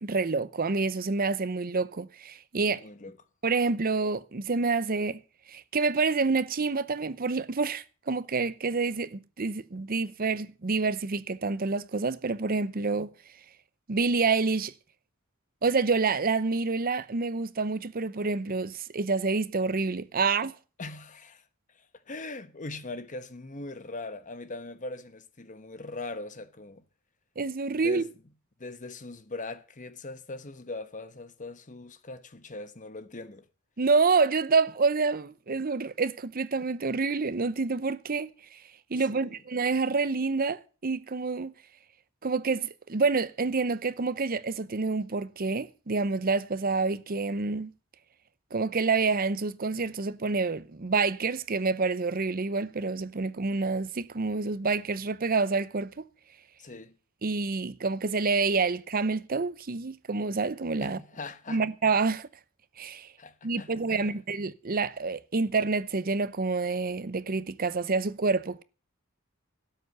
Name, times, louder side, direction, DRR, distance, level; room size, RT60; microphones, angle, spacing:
voice 1, 0.0-2.8 3.4-5.2 5.5-13.1 13.9-14.7 15.6-20.5 27.4-28.0 33.8-38.6 38.9-41.5 42.2-47.7 48.5-56.0 57.2-61.0 61.5-62.3 62.8-63.1 63.4-68.6, right 4 dB, 45° right, 0.7 m, -28 dB
voice 2, 2.6-3.2 20.8-21.4 21.7-26.8 27.8-28.1 28.6-33.5 38.9-39.4 56.6-57.0 60.8-61.7 63.2-64.2, left 2 dB, 35° left, 1.1 m, -41 dB
12.5 x 8.0 x 7.8 m
head